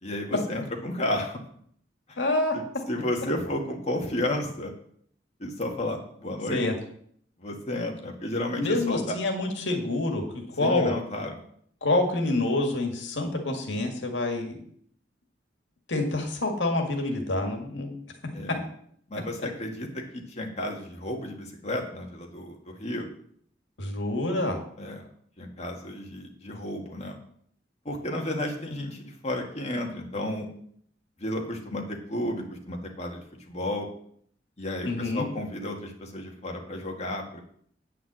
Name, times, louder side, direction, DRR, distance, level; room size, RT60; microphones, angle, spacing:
voice 1, 0.0-1.4 2.1-2.2 2.9-4.7 5.4-6.6 7.4-9.1 10.6-11.4 18.3-18.6 19.1-23.0 24.8-25.1 25.4-27.2 27.9-30.5 31.2-33.9 34.6-37.4, left 1 dB, 40° left, 1 dB, 2.0 m, -32 dB
voice 2, 2.2-2.5 6.5-6.8 8.6-10.9 11.8-14.6 15.9-17.9 23.8-24.6 34.8-35.2, left 2 dB, 85° left, 3 dB, 2.0 m, -27 dB
9.0 x 5.8 x 7.7 m, 0.64 s
head